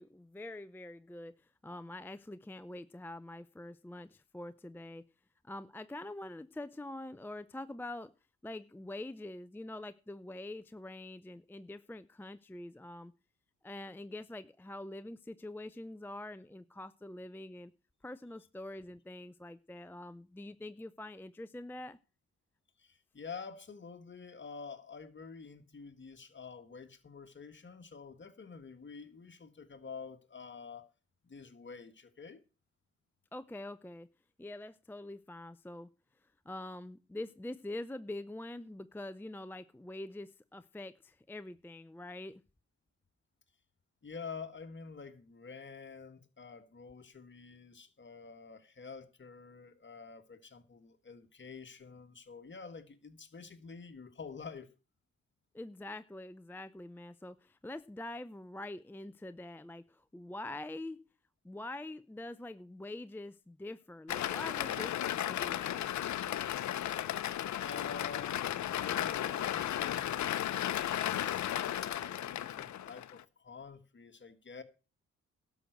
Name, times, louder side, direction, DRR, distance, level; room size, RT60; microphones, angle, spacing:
voice 1, 0.0-5.1 5.4-8.1 8.4-13.1 13.6-17.7 18.0-22.0 33.3-34.1 34.4-35.9 36.5-42.4 55.5-61.1 61.4-65.9, left 1 dB, 5° left, 0.5 m, -45 dB
voice 2, 22.8-30.9 31.2-32.4 44.0-54.7 67.6-70.5 70.8-74.6, left 5 dB, 40° left, 1.7 m, -48 dB
sound 1, 64.1-73.2, left 11 dB, 75° left, 0.7 m, -35 dB
12.0 x 6.2 x 7.9 m
cardioid pair, 80°, 29 cm